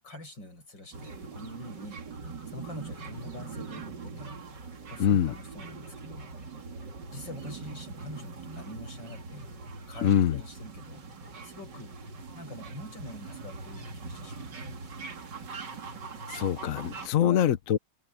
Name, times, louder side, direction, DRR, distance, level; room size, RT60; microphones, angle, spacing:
voice 1, 0.0-2.0 2.5-4.4 4.9-6.3 7.1-9.5 9.9-11.0 11.4-11.9 12.3-14.8 17.2-17.5, left 1 dB, 85° left, 8.1 m, -45 dB
sound 1, 0.9-17.1, right 4 dB, 75° right, 2.8 m, -42 dB
voice 2, 5.0-5.3 10.0-10.4 16.3-17.8, left 10 dB, 55° left, 1.1 m, -24 dB
omnidirectional pair, 1.9 m